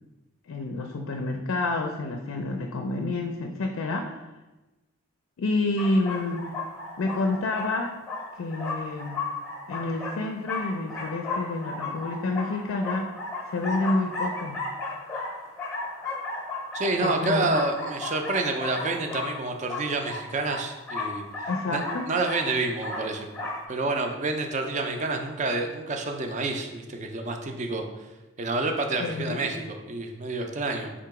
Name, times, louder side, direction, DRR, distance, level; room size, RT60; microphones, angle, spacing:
voice 1, 0.5-4.2 5.4-6.5 7.0-7.9 8.4-9.3 9.7-13.1 13.5-14.6 17.0-17.5 21.5-22.1 29.0-29.5, left 2 dB, 80° left, 3 dB, 0.4 m, -29 dB
sound 1, 5.8-23.6, left 3 dB, 15° left, 0.7 m, -35 dB
voice 2, 16.7-21.8 22.1-23.3 23.7-27.8 28.4-30.9, right 2 dB, 35° right, 4 dB, 0.4 m, -28 dB
3.8 x 2.9 x 4.7 m, 1.1 s
head